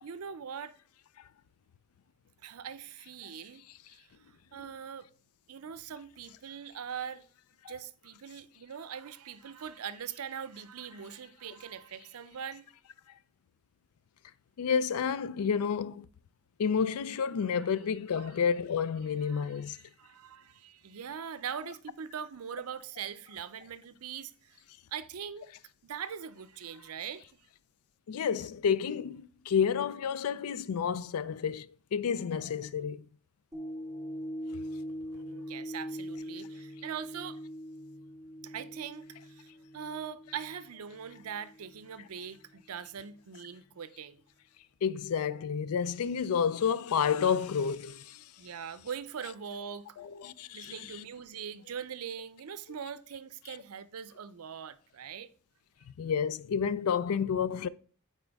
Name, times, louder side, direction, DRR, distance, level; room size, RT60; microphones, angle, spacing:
voice 1, 0.0-0.8 2.4-3.6 3.9-4.1 4.5-5.1 5.5-7.2 7.7-12.7 17.6-17.7 18.1-18.4 19.2-24.6 24.9-25.6 25.8-27.3 35.1-37.4 38.4-44.2 48.4-50.0 50.5-55.3, right 7 dB, 80° right, 0.5 m, -42 dB
voice 2, 14.6-16.1 16.6-19.8 28.1-33.0 44.8-48.2 50.0-51.0 56.0-57.7, left 7 dB, 80° left, 0.4 m, -30 dB
sound 1, 33.5-41.9 42.4-42.5, equal, ahead, 1.6 m, -42 dB
8.9 x 4.3 x 3.5 m
head